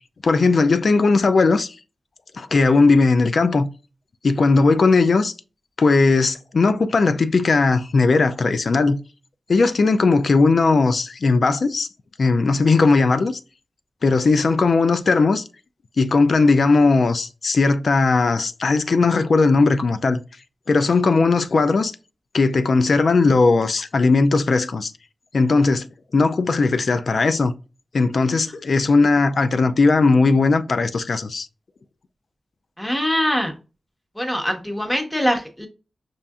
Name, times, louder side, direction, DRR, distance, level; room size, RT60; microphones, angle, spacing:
voice 1, 0.2-1.7 2.3-3.7 4.2-5.3 5.8-9.0 9.5-11.9 12.2-13.4 14.0-15.4 16.0-20.2 20.7-21.9 22.3-24.9 25.3-25.9 26.1-27.5 27.9-31.5, left 3 dB, 65° left, 0.4 m, -18 dB
voice 2, 32.8-33.5 34.1-35.7, equal, 10° left, 1.2 m, -23 dB
5.6 x 2.5 x 2.3 m
cardioid pair, 60°, 0 cm